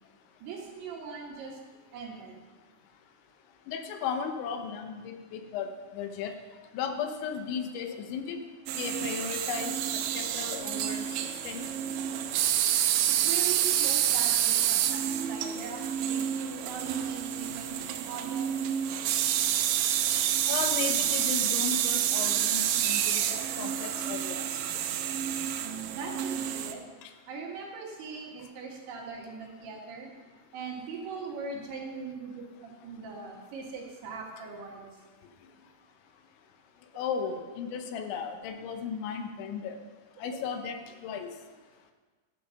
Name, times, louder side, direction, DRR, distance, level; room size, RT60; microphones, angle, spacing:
voice 1, 0.4-1.6 1.9-2.4 13.1-18.7 25.6-26.8 27.3-30.1 30.5-34.9, right 5 dB, 65° right, -1 dB, 3.4 m, -40 dB
voice 2, 3.7-6.3 6.7-8.4 8.8-9.8 10.2-11.1 11.4-11.6 20.5-24.5 27.0-27.1 37.0-39.8 40.2-41.3, left 7 dB, 80° left, 6 dB, 3.2 m, -35 dB
sound 1, 8.7-26.7, right 10 dB, 85° right, 3.0 m, -28 dB
11.5 x 8.7 x 5.6 m, 1.4 s
omnidirectional pair, 5.3 m